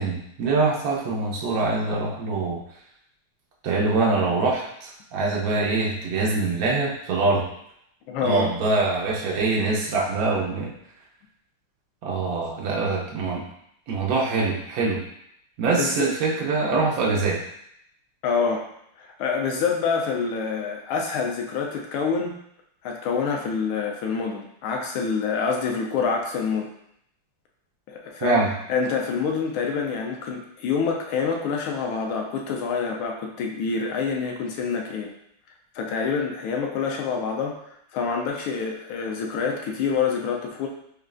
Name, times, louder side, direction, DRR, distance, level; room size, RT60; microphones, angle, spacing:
voice 1, 0.0-2.6 3.6-7.4 8.2-10.7 12.0-13.4 13.9-15.0 15.6-17.4 28.2-28.5, right 3 dB, 80° right, -3 dB, 0.8 m, -24 dB
voice 2, 8.1-8.5 15.7-16.1 18.2-18.7 19.0-22.4 22.8-26.7 27.9-28.4 28.7-35.1 35.7-40.7, left 5 dB, 75° left, 1 dB, 1.3 m, -27 dB
6.3 x 2.3 x 2.4 m, 0.74 s
omnidirectional pair, 2.4 m